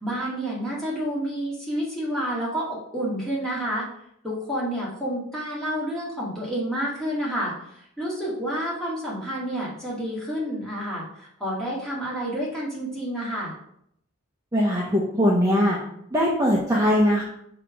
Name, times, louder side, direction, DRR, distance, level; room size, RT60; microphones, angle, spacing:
voice 1, 0.0-3.9 4.2-13.5, equal, 5° left, -7 dB, 1.9 m, -29 dB
voice 2, 14.5-15.8 16.1-17.2, equal, 15° right, -4 dB, 0.7 m, -20 dB
5.9 x 3.4 x 5.0 m, 0.73 s
head